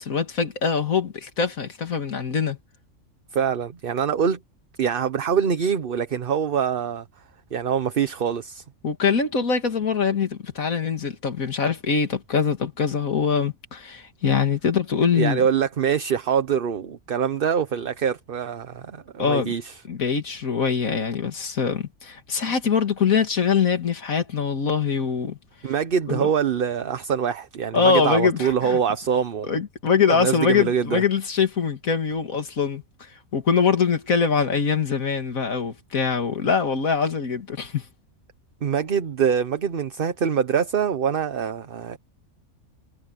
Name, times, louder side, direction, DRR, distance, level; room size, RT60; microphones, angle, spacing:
voice 1, 0.0-2.6 8.8-15.4 19.2-19.5 19.9-25.4 26.1-26.3 27.7-28.8 29.5-32.8 33.3-37.9, left 6 dB, 80° left, 2.5 m, -23 dB
voice 2, 3.3-4.4 4.8-7.0 7.5-8.6 15.1-19.8 25.6-29.6 30.1-31.0 38.6-42.0, right 7 dB, 45° right, 1.0 m, -24 dB
omnidirectional pair, 1.4 m